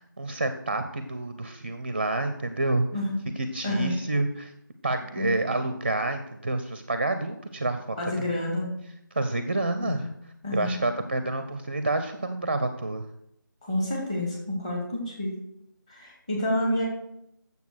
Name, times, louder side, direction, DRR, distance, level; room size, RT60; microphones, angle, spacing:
voice 1, 0.0-2.9 3.4-4.5 4.8-8.3 9.1-10.1 10.5-13.0, right 2 dB, 30° right, 9 dB, 0.5 m, -28 dB
voice 2, 8.0-8.7 9.8-10.0 10.4-10.8 13.6-15.3 15.9-16.9, left 1 dB, 20° left, -2 dB, 2.2 m, -29 dB
7.9 x 7.0 x 6.2 m, 0.78 s
figure-of-eight pair, 165°, 11 cm